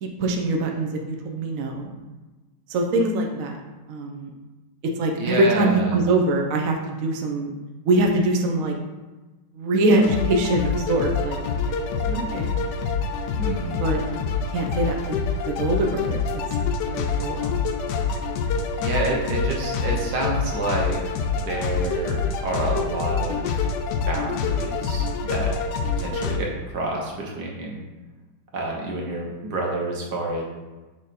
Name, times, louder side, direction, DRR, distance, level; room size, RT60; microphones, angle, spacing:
voice 1, 0.0-1.9 2.7-3.6 3.9-4.3 5.0-7.5 7.8-8.7 9.5-11.4 12.0-12.6 13.8-14.0 14.5-15.2 15.5-16.4 16.9-17.5, right 2 dB, 75° right, 2 dB, 0.7 m, -23 dB
voice 2, 5.2-6.0 13.3-13.8 18.8-23.5 24.1-25.5 26.0-27.8 28.5-30.4, right 2 dB, 55° right, -1 dB, 1.5 m, -28 dB
sound 1, 10.0-26.4, left 5 dB, 75° left, 1.0 m, -26 dB
6.5 x 3.5 x 4.2 m, 1.2 s
omnidirectional pair, 2.2 m